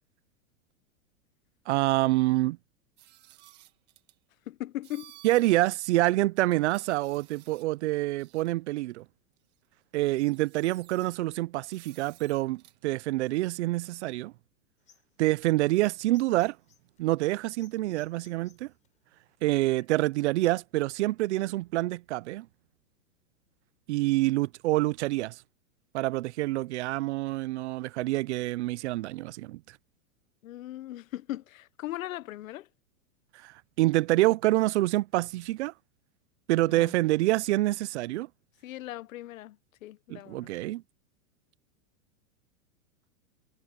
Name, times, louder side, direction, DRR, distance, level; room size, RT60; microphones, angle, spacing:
voice 1, 1.7-2.6 5.2-9.0 9.9-14.3 15.2-16.6 17.0-18.7 19.4-22.5 23.9-25.3 25.9-29.6 33.4-35.7 36.5-38.3 40.1-40.8, right 18 dB, 60° right, 0.5 m, -27 dB
sound 1, 3.0-4.2 4.8-5.7 6.0-6.1 6.5-7.8 8.2-8.5 9.5-9.6 10.0-11.2 11.7-12.8, right 15 dB, 25° right, 1.6 m, -56 dB
voice 2, 4.5-5.2 30.4-32.7 36.7-36.9 38.6-40.5, left 15 dB, 85° left, 0.8 m, -39 dB
sound 2, 14.8-19.9, left 7 dB, 20° left, 3.9 m, -63 dB
supercardioid pair, 165°, 40 cm